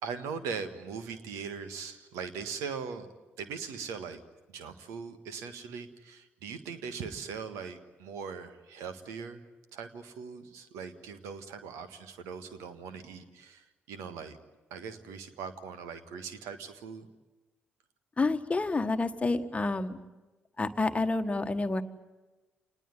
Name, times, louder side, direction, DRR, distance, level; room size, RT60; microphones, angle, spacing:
voice 1, 0.0-3.1 3.4-4.2 4.5-9.4 9.7-14.4 14.7-17.1, right 6 dB, 65° right, 10 dB, 1.6 m, -40 dB
voice 2, 18.2-20.0 20.6-21.8, left 3 dB, 25° left, 10 dB, 1.4 m, -29 dB
27.5 x 20.0 x 9.3 m, 1.2 s
figure-of-eight pair, 40°, 5 cm